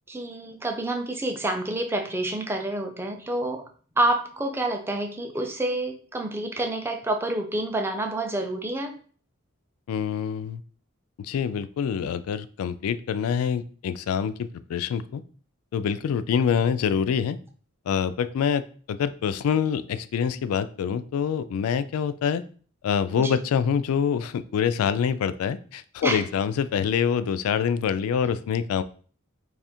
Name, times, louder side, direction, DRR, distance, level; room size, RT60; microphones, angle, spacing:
voice 1, 0.1-3.6 4.0-9.0 23.2-23.4 26.0-26.3, right 1 dB, 10° right, 4 dB, 0.4 m, -28 dB
voice 2, 9.9-10.6 11.2-15.2 15.7-17.4 17.9-22.4 22.8-28.8, left 7 dB, 90° left, 15 dB, 0.3 m, -26 dB
3.3 x 2.4 x 4.2 m, 0.43 s
head